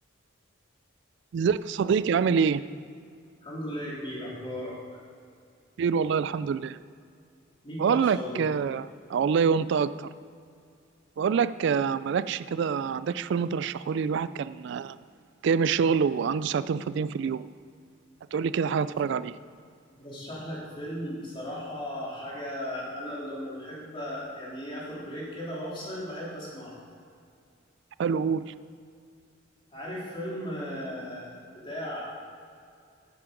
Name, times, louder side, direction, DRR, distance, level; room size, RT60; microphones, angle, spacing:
voice 1, 1.3-2.6 5.8-6.8 7.8-10.1 11.2-15.0 15.4-17.4 18.3-19.3 28.0-28.5, right 6 dB, 65° right, 15 dB, 0.3 m, -26 dB
voice 2, 3.4-5.0 7.6-8.4 18.9-19.0 20.0-26.8 29.7-32.1, equal, 25° left, -6 dB, 3.3 m, -36 dB
12.0 x 8.5 x 5.1 m, 2.4 s
head